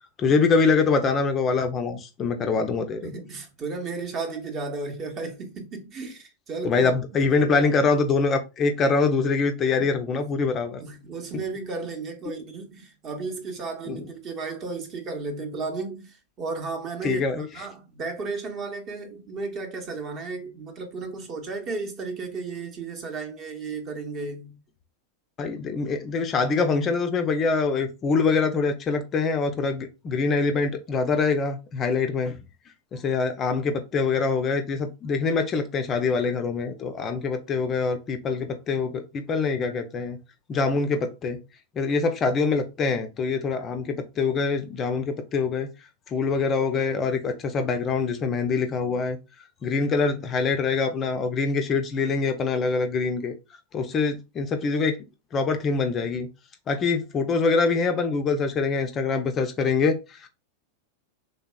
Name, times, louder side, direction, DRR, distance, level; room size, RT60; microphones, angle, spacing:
voice 1, 0.2-3.0 6.6-10.8 13.9-14.0 17.0-17.5 25.4-32.4 32.9-40.2 40.5-41.4 41.8-45.7 46.1-49.2 49.6-53.3 53.7-55.0 55.3-56.3 56.7-60.3, left 4 dB, 25° left, 0.4 m, -24 dB
voice 2, 3.0-6.9 7.3-7.7 9.8-10.1 10.8-24.6, right 4 dB, 30° right, 0.8 m, -34 dB
3.3 x 2.8 x 2.2 m
figure-of-eight pair, 90°, 0 cm